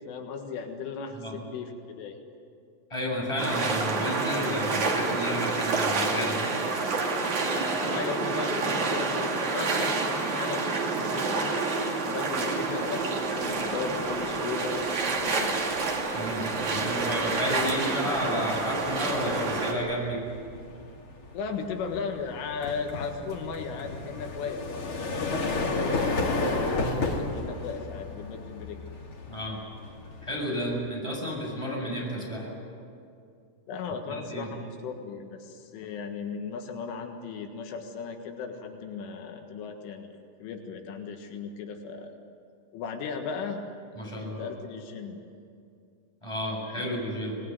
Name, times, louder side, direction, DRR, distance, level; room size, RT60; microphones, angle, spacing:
voice 1, 0.0-2.2 7.4-11.6 11.8-15.0 15.2-15.7 21.3-28.8 33.7-42.1 42.7-43.7 44.1-45.2 46.8-46.9, left 5 dB, 80° left, 4 dB, 4.2 m, -36 dB
voice 2, 2.9-6.5 16.1-20.2 29.3-29.6 30.2-32.5 34.3-34.5 44.0-44.5 46.2-47.4, equal, 5° left, -3 dB, 7.0 m, -31 dB
sound 1, 3.4-19.7, right 3 dB, 45° right, 3.4 m, -28 dB
sound 2, 13.4-13.6 14.0-30.7, left 2 dB, 40° left, 2.3 m, -34 dB
25.5 x 20.0 x 9.5 m, 2.4 s
omnidirectional pair, 5.6 m